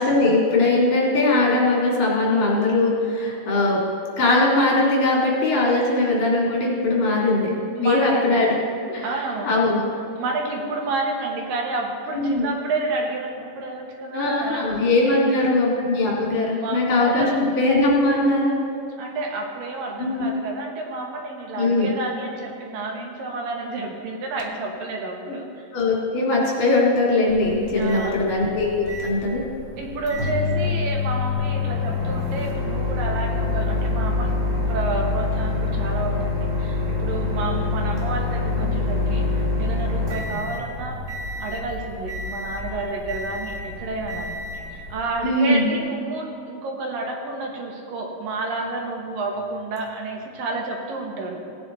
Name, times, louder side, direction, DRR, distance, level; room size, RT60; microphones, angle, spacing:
voice 1, 0.0-3.8 4.2-8.6 8.9-9.8 12.1-12.5 14.1-18.6 20.0-20.3 21.6-21.9 25.7-29.4 45.2-45.7, left 2 dB, 60° left, -3 dB, 3.6 m, -20 dB
voice 2, 7.8-8.2 9.0-9.5 10.2-14.6 15.0-15.7 16.5-17.4 19.0-25.5 27.8-28.3 29.8-34.3 34.7-39.3 39.6-41.0 41.4-51.4, right 2 dB, 80° right, 1 dB, 3.1 m, -30 dB
Microwave oven, 27.3-45.2, left 3 dB, 20° right, 1.9 m, -26 dB
17.0 x 8.9 x 4.1 m, 2.5 s
omnidirectional pair, 3.9 m